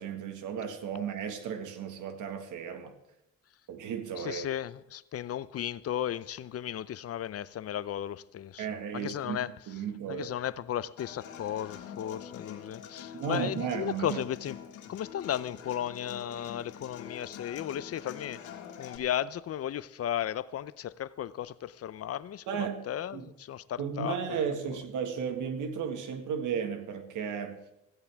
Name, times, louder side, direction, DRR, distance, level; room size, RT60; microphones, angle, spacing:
voice 1, 0.0-2.9 3.7-4.5 8.6-9.4 9.7-10.3 13.1-14.2 22.5-22.9 23.1-23.3 23.8-27.6, right 7 dB, 85° right, 1.7 m, -34 dB
voice 2, 4.2-8.7 8.9-9.5 10.1-14.6 14.9-18.4 18.8-24.4 24.7-24.8, left 10 dB, 50° left, 0.6 m, -35 dB
Human voice / Acoustic guitar, 11.0-19.0, left 8 dB, 85° left, 2.0 m, -45 dB
16.0 x 15.5 x 3.5 m
cardioid pair, 90°, 30 cm